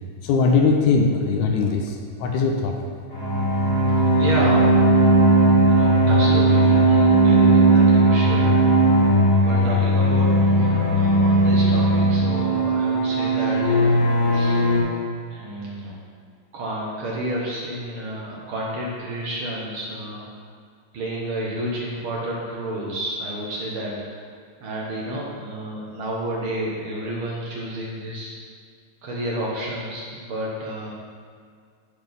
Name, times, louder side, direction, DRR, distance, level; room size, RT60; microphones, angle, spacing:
voice 1, 0.2-2.8, left 4 dB, 75° left, 2 dB, 1.9 m, -20 dB
sound 1, 3.1-14.8, right 2 dB, 25° left, 2.1 m, -17 dB
voice 2, 4.2-4.8 5.7-9.0 9.4-14.0 14.3-14.6 15.3-16.0 16.5-20.2 20.9-24.2 24.6-28.4 29.0-30.9, right 1 dB, 65° right, -4 dB, 1.3 m, -30 dB
11.0 x 4.2 x 5.2 m, 2.1 s
omnidirectional pair, 4.0 m